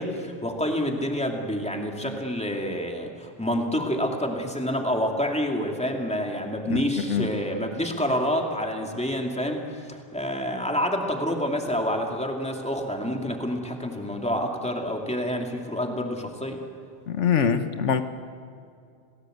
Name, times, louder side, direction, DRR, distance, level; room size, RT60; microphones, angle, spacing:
voice 1, 0.0-16.6, equal, 5° left, 2 dB, 2.6 m, -28 dB
voice 2, 17.1-18.0, left 7 dB, 85° left, 9 dB, 1.3 m, -23 dB
28.5 x 18.5 x 8.0 m, 2.4 s
omnidirectional pair, 1.2 m